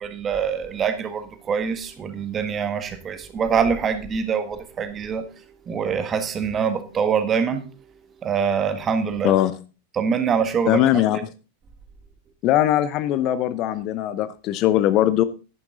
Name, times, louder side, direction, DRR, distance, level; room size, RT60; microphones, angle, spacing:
voice 1, 0.0-5.2 5.7-7.6 8.2-9.3 9.9-11.0, right 6 dB, 25° right, 1.6 m, -24 dB
voice 2, 10.7-11.3 12.4-15.2, left 12 dB, 40° left, 0.7 m, -20 dB
11.0 x 10.5 x 3.8 m
figure-of-eight pair, 90°, 0 cm